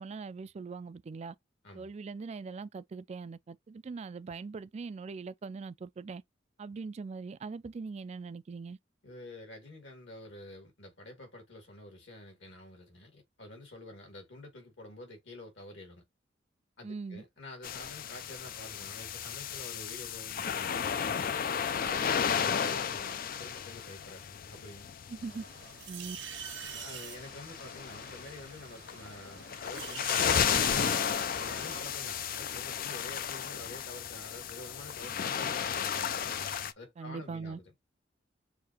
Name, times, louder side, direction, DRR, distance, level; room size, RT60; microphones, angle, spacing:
voice 1, 0.0-1.4 1.7-6.2 6.6-8.8 16.8-17.2 25.1-25.4 25.9-26.2 37.0-37.6, right 4 dB, 35° right, 0.3 m, -41 dB
voice 2, 9.0-16.0 16.8-20.7 21.0-21.4 21.8-24.9 26.8-36.3 36.8-37.6, left 1 dB, 70° left, 2.7 m, -48 dB
sound 1, 17.6-36.7, left 8 dB, 50° left, 0.4 m, -34 dB
sound 2, 25.2-32.4, right 8 dB, 85° right, 1.3 m, -46 dB
6.5 x 2.8 x 2.8 m
head